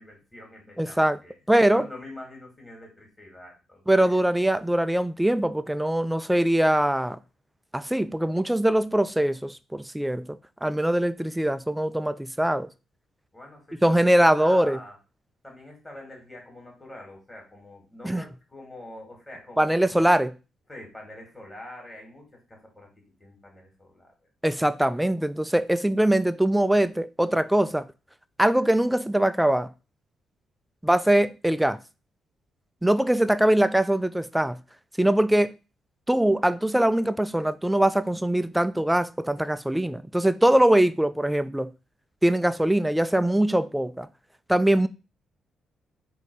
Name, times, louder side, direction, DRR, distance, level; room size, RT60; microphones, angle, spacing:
voice 1, 0.0-4.1 13.3-14.9 15.4-20.0 20.7-22.9 23.2-24.1, left 1 dB, 15° left, 2.3 m, -45 dB
voice 2, 0.8-1.2 1.5-1.9 3.9-7.2 7.7-10.3 10.6-12.7 13.8-14.8 18.0-18.2 19.6-20.3 24.4-27.9 28.4-29.7 30.8-31.8 32.8-34.6 35.0-35.6 36.1-41.7 42.2-44.1 44.5-44.9, right 1 dB, 5° right, 0.3 m, -22 dB
4.1 x 2.8 x 4.7 m
cardioid pair, 100°, 0 cm